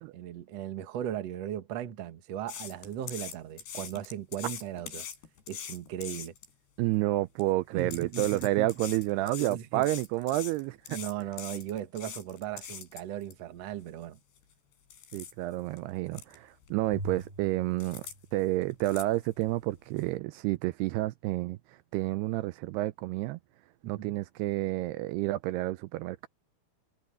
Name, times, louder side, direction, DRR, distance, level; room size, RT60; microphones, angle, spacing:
voice 1, 0.1-5.1 5.5-6.3 7.7-8.7 9.4-9.9 10.9-14.2 23.8-24.2, right 11 dB, 60° right, 1.9 m, -37 dB
sound 1, 2.5-6.5 7.2-7.4 7.8-13.3 13.8-13.9 14.4-14.5 14.9-15.3 15.8-15.9 16.1-16.4 16.6-17.2 17.8-18.1 18.4-19.6 20.0-20.1, left 8 dB, 75° left, 5.5 m, -42 dB
voice 2, 6.8-10.8 15.1-18.0 18.3-23.4 23.9-26.3, right 17 dB, 80° right, 2.5 m, -30 dB
Bowed string instrument, 16.9-19.3, right 1 dB, 15° right, 2.7 m, -44 dB
omnidirectional pair, 4.8 m